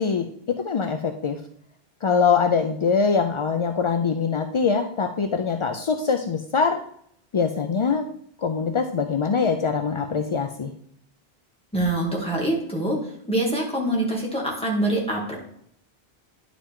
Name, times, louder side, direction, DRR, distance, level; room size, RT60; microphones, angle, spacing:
voice 1, 0.0-1.4 2.0-6.8 7.3-8.1 8.4-10.7, left 5 dB, 55° left, 6 dB, 0.3 m, -23 dB
voice 2, 11.7-13.0 13.3-15.4, right 1 dB, 5° left, -3 dB, 2.0 m, -24 dB
10.0 x 4.9 x 3.6 m, 0.66 s
omnidirectional pair, 1.1 m